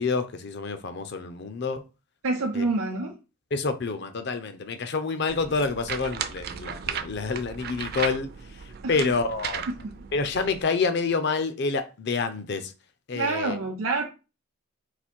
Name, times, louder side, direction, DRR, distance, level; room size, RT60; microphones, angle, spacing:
voice 1, 0.0-1.8 2.5-2.6 3.5-9.6 10.1-12.7 13.1-13.6, left 4 dB, 55° left, 0.6 m, -28 dB
voice 2, 2.2-3.2 8.8-9.1 13.1-14.0, right 3 dB, 85° right, 0.7 m, -27 dB
sound 1, 5.3-10.6, right 7 dB, 50° right, 0.4 m, -36 dB
4.1 x 2.5 x 4.4 m
head